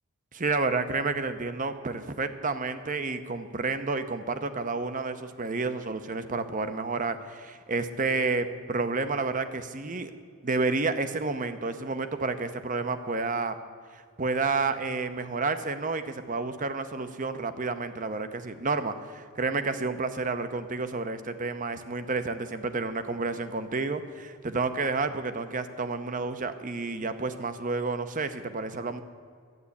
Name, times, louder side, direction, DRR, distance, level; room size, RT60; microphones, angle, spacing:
voice 1, 0.3-10.1 10.4-13.6 13.9-29.0, right 3 dB, 40° right, 10 dB, 0.8 m, -30 dB
12.0 x 9.2 x 8.4 m, 2.1 s
head